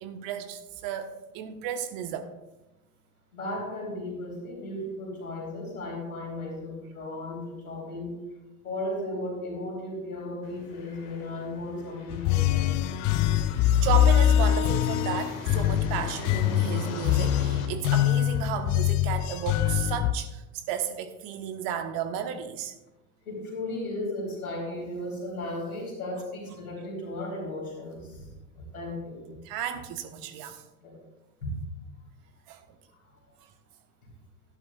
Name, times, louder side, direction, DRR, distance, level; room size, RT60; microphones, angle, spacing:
voice 1, 0.0-1.1 1.3-2.3 13.5-22.7 29.4-30.6 32.5-32.6 33.4-33.5, right 9 dB, 55° right, 8 dB, 1.2 m, -33 dB
voice 2, 3.3-8.2 8.6-13.0 23.3-28.3 28.6-29.4 30.8-30.9 31.4-31.5 32.9-33.0, left 1 dB, 90° left, -3 dB, 4.0 m, -35 dB
sound 1, 10.4-17.7, left 4 dB, 70° left, 1.9 m, -42 dB
sound 2, 12.1-20.1, left 11 dB, 45° left, 0.5 m, -24 dB
13.0 x 11.0 x 2.4 m, 1.0 s
figure-of-eight pair, 75°, 42 cm